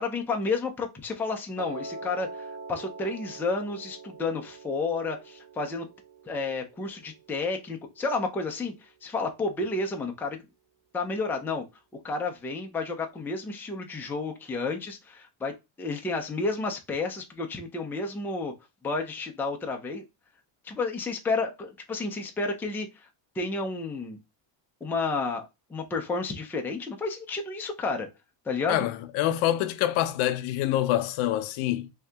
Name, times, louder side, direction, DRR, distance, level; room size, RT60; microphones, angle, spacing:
voice 1, 0.0-5.9 6.3-10.4 10.9-11.6 12.0-18.5 18.8-20.0 20.6-23.1 23.4-24.2 24.8-28.1 28.5-28.8, left 3 dB, 5° left, 0.4 m, -31 dB
Piano, 1.6-7.7, right 2 dB, 35° right, 1.0 m, -43 dB
voice 2, 28.7-31.9, left 13 dB, 80° left, 0.6 m, -26 dB
3.6 x 2.8 x 3.3 m
cardioid pair, 165°, 47 cm